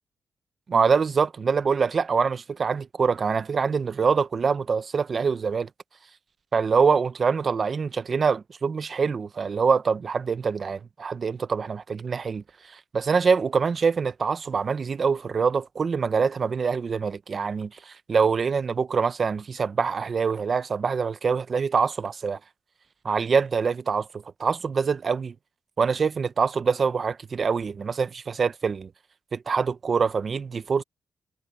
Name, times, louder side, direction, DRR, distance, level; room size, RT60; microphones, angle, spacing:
voice 1, 0.7-5.7 6.5-22.4 23.0-25.3 25.8-28.9 29.3-30.8, right 5 dB, 40° right, 0.7 m, -25 dB
wide cardioid pair, 155°, 0 cm